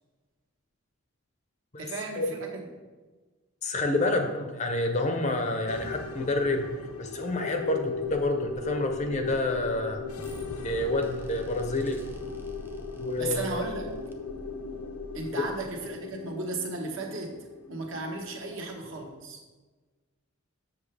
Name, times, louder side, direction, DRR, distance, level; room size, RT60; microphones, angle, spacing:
voice 1, 1.8-2.5 13.2-13.9 15.1-17.4 17.7-19.4, right 3 dB, 60° right, 1 dB, 1.2 m, -35 dB
voice 2, 3.6-6.6 7.0-10.0 10.6-12.0 13.0-13.5 15.3-15.4, left 2 dB, 30° left, 5 dB, 0.7 m, -28 dB
sound 1, 5.7-19.2, left 4 dB, 90° left, 0.6 m, -38 dB
sound 2, 7.7-16.2, equal, 10° right, 0.4 m, -46 dB
7.3 x 6.7 x 3.3 m, 1.3 s
head